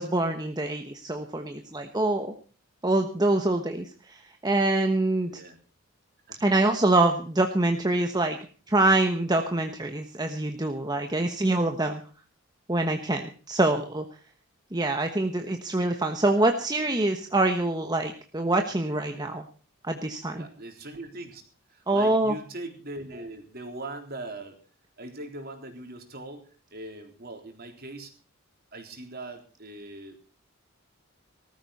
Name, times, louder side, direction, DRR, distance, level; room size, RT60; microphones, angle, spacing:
voice 1, 0.0-2.3 2.8-5.4 6.4-8.4 8.7-12.0 12.7-14.0 14.7-19.4 19.8-20.5 21.9-22.3, right 2 dB, 20° right, 5 dB, 1.1 m, -25 dB
voice 2, 5.3-5.6 6.3-6.4 20.3-21.4 21.7-24.6 25.0-28.1 28.7-30.2, right 2 dB, 45° right, 4 dB, 3.8 m, -40 dB
19.0 x 13.5 x 4.1 m, 0.39 s
head